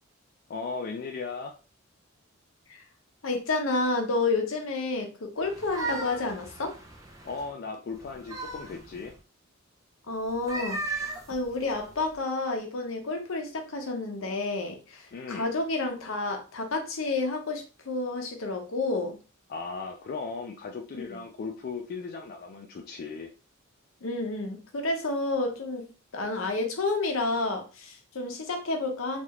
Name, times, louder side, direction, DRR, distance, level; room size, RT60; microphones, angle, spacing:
voice 1, 0.5-1.6 7.2-9.2 15.1-15.5 19.5-23.3, left 4 dB, 45° left, 0.3 m, -37 dB
voice 2, 3.2-6.8 10.1-19.2 20.9-21.2 24.0-25.9 26.1-29.2, left 3 dB, 70° left, 0.7 m, -30 dB
sound 1, 5.4-7.5 8.0-9.2 10.3-12.1, right 2 dB, 15° right, 0.5 m, -37 dB
3.1 x 2.4 x 2.8 m
head